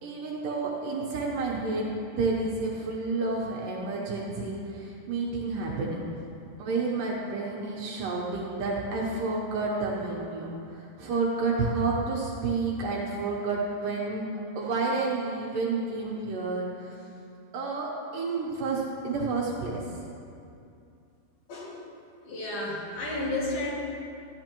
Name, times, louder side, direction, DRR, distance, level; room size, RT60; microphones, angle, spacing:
voice 1, 0.0-6.0 6.6-14.3 14.6-16.9 17.5-19.8, right 3 dB, 70° right, -3 dB, 2.4 m, -30 dB
voice 2, 21.5-21.9 22.2-23.7, left 2 dB, 80° left, -5 dB, 4.0 m, -32 dB
14.0 x 11.0 x 3.0 m, 2.6 s
omnidirectional pair, 4.4 m